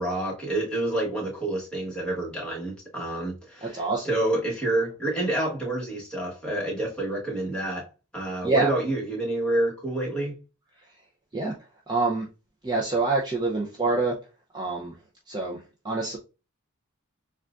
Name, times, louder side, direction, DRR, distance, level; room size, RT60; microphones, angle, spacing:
voice 1, 0.0-7.9 8.1-10.4, right 1 dB, 5° left, 1.4 m, -28 dB
voice 2, 3.6-4.1 8.4-8.7 11.3-11.5 11.9-12.3 12.6-14.2 14.5-14.9 15.3-16.2, right 3 dB, 20° right, 0.6 m, -26 dB
6.9 x 2.4 x 2.5 m
head